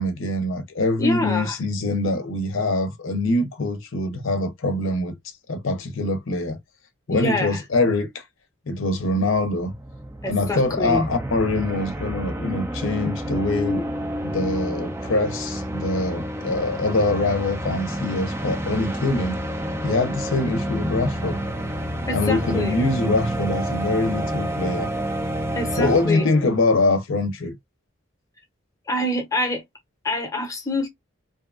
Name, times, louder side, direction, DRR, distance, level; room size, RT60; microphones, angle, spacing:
voice 1, 0.0-5.1 5.5-6.6 7.1-8.2 8.7-9.7 10.3-13.8 14.2-19.4 19.8-21.4 22.1-24.9 25.8-27.5, left 2 dB, 70° left, 0.6 m, -24 dB
voice 2, 1.0-1.6 7.1-7.6 10.2-11.1 22.1-22.8 25.5-26.3 28.9-29.6 30.0-30.9, left 2 dB, 15° left, 0.7 m, -26 dB
sound 1, 9.1-26.6, right 1 dB, 15° right, 0.3 m, -29 dB
2.6 x 2.3 x 2.4 m
head